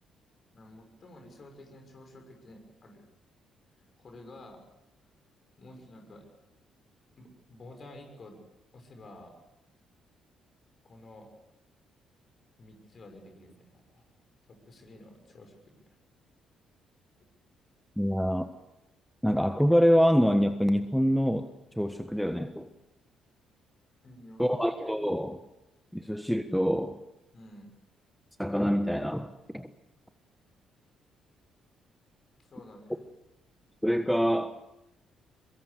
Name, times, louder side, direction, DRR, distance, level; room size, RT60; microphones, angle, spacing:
voice 1, 0.5-3.1 4.0-4.6 5.6-6.3 7.2-8.4 8.7-9.3 10.8-11.3 12.6-14.0 14.5-16.0 24.0-24.6 27.3-27.8 30.4-30.5 32.4-33.0, left 1 dB, 45° left, 4 dB, 6.5 m, -51 dB
voice 2, 18.0-18.5 19.2-21.5 21.8-22.7 24.4-25.4 25.9-27.0 28.4-29.7 33.8-34.6, equal, ahead, 9 dB, 1.4 m, -25 dB
23.5 x 22.5 x 6.8 m, 0.91 s
hypercardioid pair, 45°, 0 cm